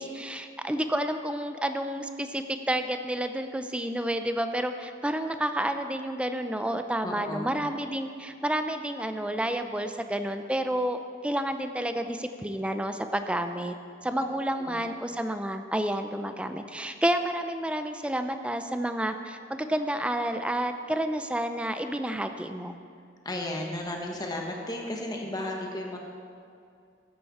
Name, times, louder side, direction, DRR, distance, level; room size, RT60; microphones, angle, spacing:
voice 1, 0.0-13.7 14.0-22.8, right 1 dB, 5° right, 8 dB, 0.5 m, -30 dB
voice 2, 7.0-7.6 14.6-14.8 23.2-26.0, left 1 dB, 20° left, 0 dB, 1.3 m, -34 dB
14.0 x 9.0 x 4.3 m, 2.4 s
head